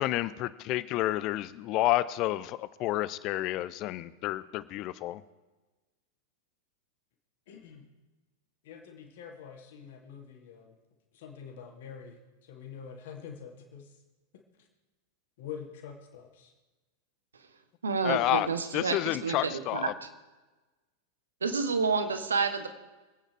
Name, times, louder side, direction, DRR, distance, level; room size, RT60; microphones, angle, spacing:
voice 1, 0.0-5.2 18.0-18.5 18.7-19.9, left 15 dB, 40° left, 17 dB, 0.7 m, -30 dB
voice 2, 7.5-7.8 8.6-10.8 11.1-12.2 12.5-13.9 14.3-14.4 15.4-16.5, left 7 dB, 55° left, 3 dB, 2.7 m, -45 dB
voice 3, 17.8-19.9 21.4-22.7, right 5 dB, 70° right, 8 dB, 1.5 m, -29 dB
25.0 x 9.1 x 4.7 m, 1.2 s
figure-of-eight pair, 90°, 0 cm